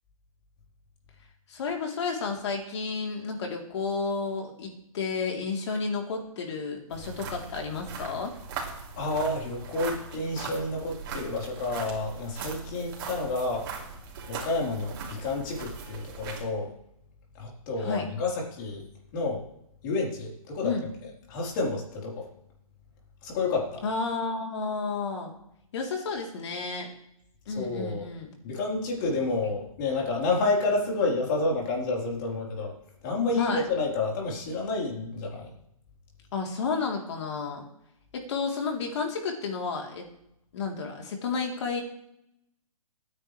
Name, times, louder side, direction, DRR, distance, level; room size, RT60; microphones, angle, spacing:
voice 1, 1.5-8.3 17.8-18.0 20.6-20.9 23.8-25.3 25.7-26.9 27.5-28.3 33.4-33.6 36.3-37.6 38.1-40.0 40.5-41.8, left 4 dB, 50° left, 1 dB, 3.6 m, -31 dB
sound 1, 6.9-16.4, right 5 dB, 35° right, 3.4 m, -40 dB
voice 2, 9.0-13.7 14.3-16.7 17.4-18.9 19.1-19.4 19.8-20.8 21.3-22.3 23.2-23.8 27.5-28.1 28.4-32.7 33.0-35.5, left 3 dB, 30° left, -2 dB, 4.2 m, -29 dB
26.0 x 9.9 x 3.4 m, 0.79 s
hypercardioid pair, 160°, 19 cm